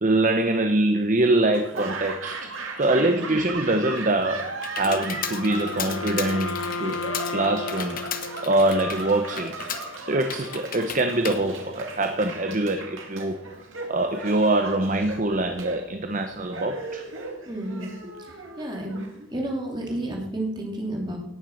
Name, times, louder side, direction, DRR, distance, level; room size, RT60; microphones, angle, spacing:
voice 1, 0.0-7.0 7.3-8.0 8.4-9.6 10.1-13.4 13.9-17.0, right 2 dB, 40° right, 7 dB, 0.8 m, -24 dB
Laughter / Applause, 1.5-19.6, right 3 dB, 70° right, 2.4 m, -37 dB
Computer keyboard, 3.8-12.4, left 8 dB, 45° left, 1.1 m, -36 dB
Wind instrument woodwind instrument, 4.8-9.0, left 3 dB, 85° left, 1.0 m, -34 dB
voice 2, 17.5-17.9 18.6-19.0 19.3-21.2, right 1 dB, 20° right, 0 dB, 2.7 m, -31 dB
18.0 x 7.3 x 6.4 m, 0.92 s
head